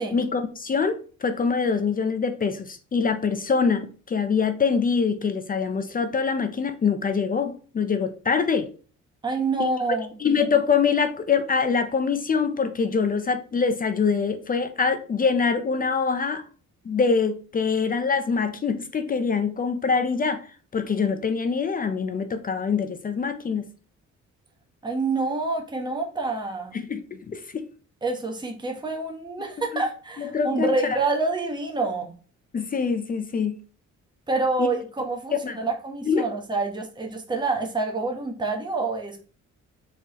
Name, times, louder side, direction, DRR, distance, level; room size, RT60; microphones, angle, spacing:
voice 1, 0.1-8.7 9.6-9.7 10.2-16.4 16.8-20.4 20.7-23.7 26.7-27.6 29.7-29.8 30.2-31.0 32.5-33.6 34.6-34.7 35.4-35.6 36.1-36.3, left 5 dB, 30° left, 0.5 m, -24 dB
voice 2, 9.2-10.1 24.8-26.8 28.0-32.1 34.3-39.2, right 3 dB, 15° right, 1.0 m, -27 dB
4.3 x 3.5 x 2.9 m
cardioid pair, 90°, 30 cm